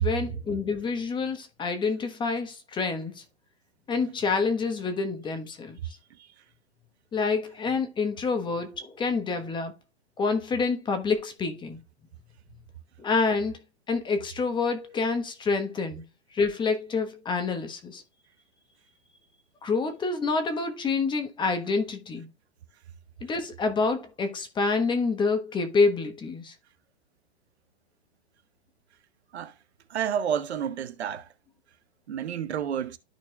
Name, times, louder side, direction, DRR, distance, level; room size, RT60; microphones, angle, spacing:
voice 1, 0.0-3.2 3.9-5.8 7.1-9.7 10.2-11.8 13.0-13.6 13.9-16.0 16.3-18.0 19.6-22.3 23.2-26.5, left 4 dB, 15° left, 1.1 m, -27 dB
voice 2, 29.9-31.3 32.1-33.0, right 8 dB, 75° right, 1.0 m, -30 dB
13.5 x 4.6 x 2.3 m
hypercardioid pair, 135°, 33 cm